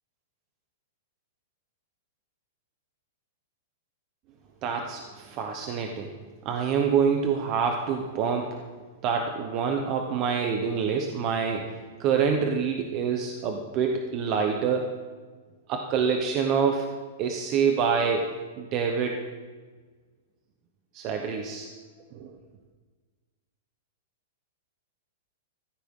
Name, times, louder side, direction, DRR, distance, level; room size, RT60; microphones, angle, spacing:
voice 1, 4.6-6.1 6.4-8.6 9.0-14.9 15.7-16.9 17.2-18.3 18.6-19.2 20.9-21.7 22.1-22.3, right 6 dB, 25° right, 3 dB, 0.9 m, -26 dB
15.5 x 14.0 x 3.7 m, 1.4 s
supercardioid pair, 180°, 0 cm